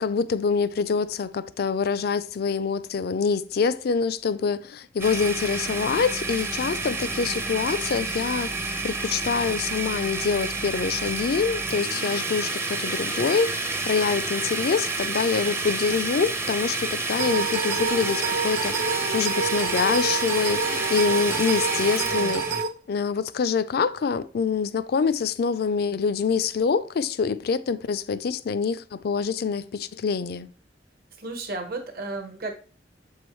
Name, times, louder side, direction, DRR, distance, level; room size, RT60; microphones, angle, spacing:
voice 1, 0.0-22.6 22.9-30.5, left 5 dB, 60° left, 0.4 m, -25 dB
Domestic sounds home sounds, 5.0-22.6, right 3 dB, 15° right, 0.6 m, -29 dB
sound 1, 17.2-22.7, right 5 dB, 80° right, 1.1 m, -28 dB
voice 2, 31.2-32.5, right 3 dB, 60° right, 1.2 m, -33 dB
7.5 x 4.6 x 3.1 m
head